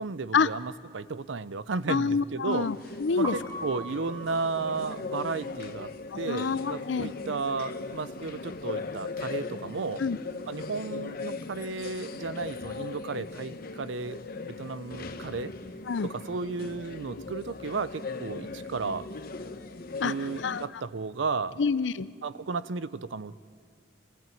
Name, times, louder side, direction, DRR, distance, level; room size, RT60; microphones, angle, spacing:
voice 1, 0.0-2.7 3.2-5.9 6.2-10.0 10.5-14.2 14.5-15.5 16.0-19.1 20.0-21.6 22.2-23.4, right 4 dB, 75° right, 16 dB, 0.6 m, -33 dB
voice 2, 1.9-3.4 6.1-7.1 10.0-10.2 15.9-16.1 20.0-20.6 21.6-22.1, left 5 dB, 70° left, 16 dB, 0.5 m, -27 dB
sound 1, 2.5-20.7, left 3 dB, 50° left, 1.0 m, -39 dB
Piano, 3.2-9.0 9.3-10.9 11.2-17.6, right 2 dB, 20° right, 1.9 m, -45 dB
29.0 x 13.5 x 9.1 m, 2.1 s
head